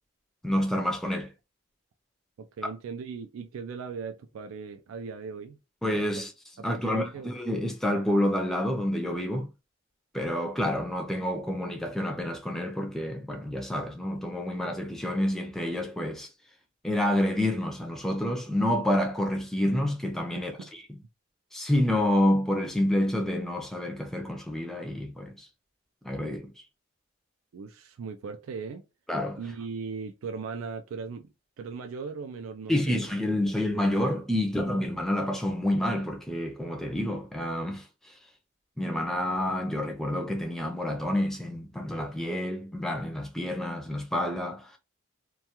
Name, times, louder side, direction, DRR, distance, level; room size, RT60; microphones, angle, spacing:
voice 1, 0.4-1.3 5.8-6.3 6.6-9.5 10.1-16.3 16.8-20.8 21.5-25.5 26.0-26.5 29.1-29.4 32.7-38.1 38.8-44.8, left 1 dB, ahead, 0.4 m, -28 dB
voice 2, 2.4-5.6 6.6-7.3 20.3-20.7 27.5-28.8 29.4-31.3 31.6-33.0, right 5 dB, 75° right, 0.3 m, -38 dB
2.3 x 2.2 x 2.8 m
head